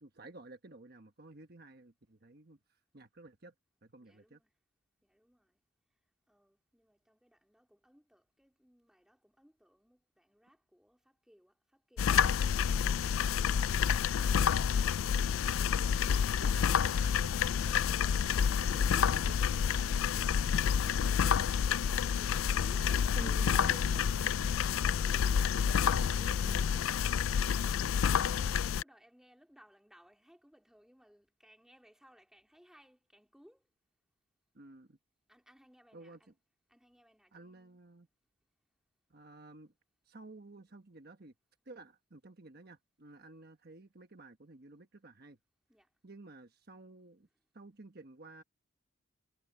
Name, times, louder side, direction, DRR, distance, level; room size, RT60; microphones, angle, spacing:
voice 1, 0.0-3.5 3.8-4.4 15.6-16.0 16.3-21.5 22.8-24.5 24.9-27.7 28.3-28.7 34.5-35.0 35.9-36.3 37.3-38.1 39.1-39.7 40.0-41.3 41.6-45.4 46.0-47.3 47.5-48.4, right 2 dB, 50° right, 1.2 m, -52 dB
voice 2, 4.0-4.5 5.0-5.6 6.3-13.8 21.4-23.9 25.0-27.6 27.9-33.7 35.3-36.3 36.7-37.8 45.7-45.9, equal, 5° right, 3.2 m, -63 dB
sound 1, 12.0-28.8, left 7 dB, 85° left, 0.4 m, -29 dB
head